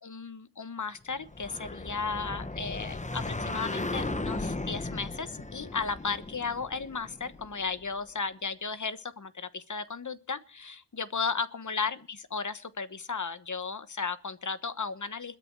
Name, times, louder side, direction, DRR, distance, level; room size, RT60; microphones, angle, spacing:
voice 1, 0.0-15.3, left 5 dB, 40° left, 13 dB, 1.2 m, -35 dB
sound 1, 1.2-7.8, left 2 dB, 15° left, 0.9 m, -36 dB
21.5 x 9.8 x 4.6 m, 0.39 s
wide cardioid pair, 100°, 44 cm